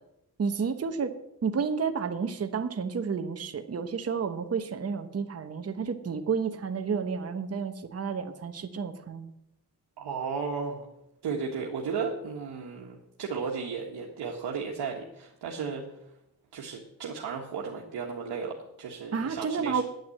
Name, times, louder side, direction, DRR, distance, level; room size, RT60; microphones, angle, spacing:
voice 1, 0.4-1.1 1.4-9.3 19.1-19.8, right 5 dB, 40° right, 8 dB, 1.0 m, -31 dB
voice 2, 10.0-10.9 11.2-15.8 16.5-19.8, right 5 dB, 80° right, 0 dB, 1.5 m, -34 dB
9.3 x 9.0 x 7.8 m, 0.84 s
cardioid pair, 110°, 39 cm